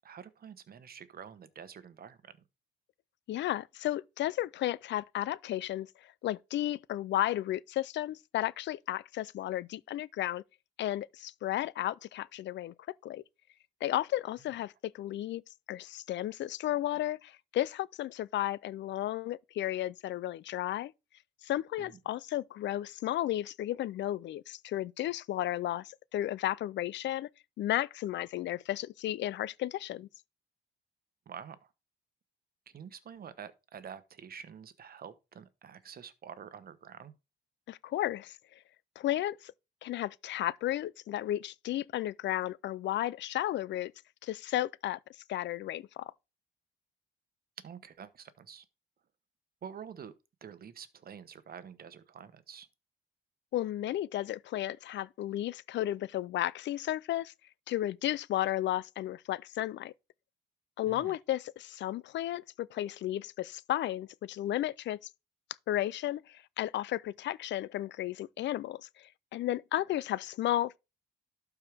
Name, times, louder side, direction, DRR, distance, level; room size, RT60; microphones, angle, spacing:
voice 1, 0.0-2.3 21.8-22.0 31.3-31.6 32.7-37.1 47.6-48.6 49.6-50.1 50.4-52.7 60.9-61.1, right 7 dB, 50° right, 1.1 m, -47 dB
voice 2, 3.3-10.4 10.8-12.7 13.0-13.2 13.8-15.4 15.7-20.9 21.4-27.3 27.6-30.1 37.7-38.4 39.0-39.5 39.8-43.9 44.2-45.0 45.3-46.1 53.5-57.3 57.7-59.9 60.8-65.0 65.7-70.8, left 13 dB, 65° left, 0.4 m, -33 dB
12.0 x 4.6 x 3.5 m
cardioid pair, 90°, 20 cm